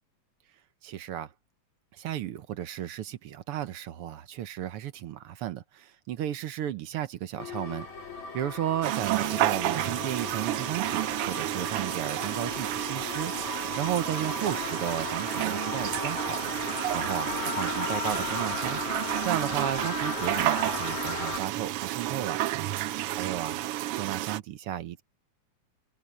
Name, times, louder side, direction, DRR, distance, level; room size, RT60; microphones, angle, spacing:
voice 1, 0.8-1.3 1.9-7.9 8.3-13.3 13.6-16.4 16.9-18.8 19.2-22.4 23.1-23.6 23.9-25.0, right 12 dB, 65° right, 1.5 m, -34 dB
sound 1, 7.4-21.4, left 6 dB, 75° left, 4.6 m, -36 dB
sound 2, 8.8-24.4, right 15 dB, 85° right, 1.2 m, -31 dB
open air
omnidirectional pair, 3.3 m